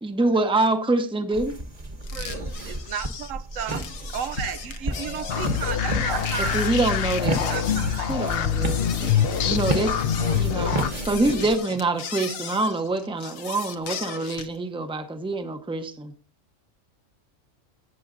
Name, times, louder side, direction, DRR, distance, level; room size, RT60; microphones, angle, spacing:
voice 1, 0.0-1.5 6.5-8.9 9.4-9.9 10.3-10.8 11.1-16.1, right 2 dB, 5° right, 0.7 m, -25 dB
sound 1, 1.3-11.6, right 1 dB, 30° right, 1.2 m, -33 dB
sound 2, 2.0-14.6, left 7 dB, 85° left, 1.2 m, -38 dB
voice 2, 2.1-6.7 7.3-8.1, right 8 dB, 80° right, 1.0 m, -34 dB
voice 3, 4.9-5.7 6.1-6.4 8.6-9.0 9.2-11.8, left 1 dB, 30° left, 1.0 m, -37 dB
sound 3, 5.3-10.9, left 9 dB, 55° left, 0.8 m, -25 dB
17.5 x 7.0 x 2.6 m
omnidirectional pair, 1.3 m